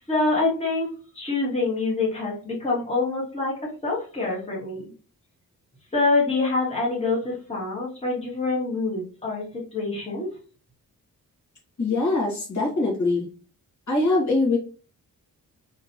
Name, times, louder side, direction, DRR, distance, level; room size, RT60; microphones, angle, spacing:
voice 1, 0.1-0.9 1.1-4.8 5.9-9.4 9.7-10.3, left 3 dB, 20° left, -4 dB, 1.6 m, -25 dB
voice 2, 11.8-13.3 13.9-14.6, left 2 dB, 55° left, -2 dB, 1.7 m, -22 dB
3.8 x 3.2 x 2.9 m, 0.37 s
wide cardioid pair, 135°, 35 cm